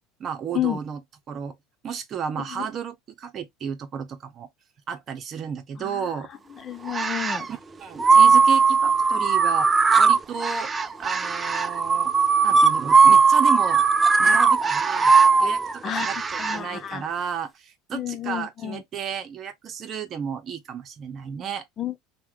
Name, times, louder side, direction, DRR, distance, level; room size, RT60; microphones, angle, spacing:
voice 1, 0.2-1.0 1.3-1.6 1.8-4.5 4.9-6.3 7.5-9.7 10.0-10.7 11.0-12.1 12.4-13.8 14.2-15.1 15.4-21.7, right 7 dB, 45° right, 0.8 m, -33 dB
voice 2, 6.6-7.5 15.8-16.1 16.4-17.0 17.9-18.8 21.8-22.0, left 11 dB, 40° left, 0.5 m, -30 dB
sound 1, 6.9-7.5 8.0-16.6, right 5 dB, 25° right, 0.4 m, -18 dB
2.9 x 2.3 x 3.7 m
hypercardioid pair, 75°, 0 cm